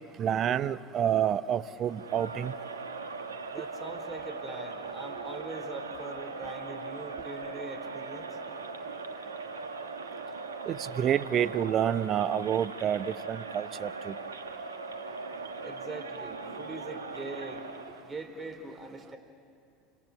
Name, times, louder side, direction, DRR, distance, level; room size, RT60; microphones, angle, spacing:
voice 1, 0.2-2.5 10.7-14.1, right 9 dB, 40° right, 16 dB, 0.8 m, -28 dB
Crowd, 1.8-18.1, right 4 dB, 85° right, 1.5 m, -40 dB
voice 2, 3.5-8.4 15.6-17.6 18.0-19.2, right 3 dB, 20° right, 6 dB, 4.3 m, -42 dB
29.5 x 26.0 x 7.3 m, 2.4 s
hypercardioid pair, 75°, 0 cm